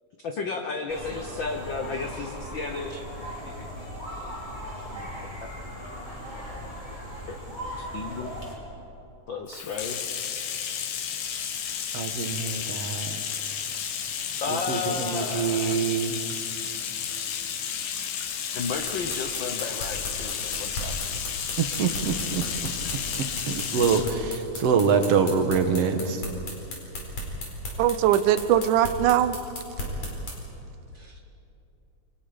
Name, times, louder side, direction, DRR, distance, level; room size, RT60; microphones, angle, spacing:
voice 1, 0.2-3.0 3.4-3.7 4.9-5.1 5.4-5.5 7.3-7.4 7.8-8.3 9.3-10.0 14.4-15.8 18.5-21.2 30.9-31.2, left 4 dB, 70° left, 5 dB, 1.1 m, -33 dB
sound 1, 0.9-8.5, equal, 15° left, 4.4 m, -38 dB
Bathtub (filling or washing), 9.5-24.1, left 8 dB, 90° left, 3.0 m, -32 dB
voice 2, 11.9-13.2 14.7-16.2 21.6-22.4 23.2-26.2, right 6 dB, 60° right, 6 dB, 2.0 m, -25 dB
sound 2, 18.7-30.4, left 1 dB, 55° left, 5.7 m, -35 dB
voice 3, 27.8-29.4, right 11 dB, 80° right, 13 dB, 2.2 m, -21 dB
28.5 x 24.0 x 5.1 m, 2.8 s
omnidirectional pair, 3.6 m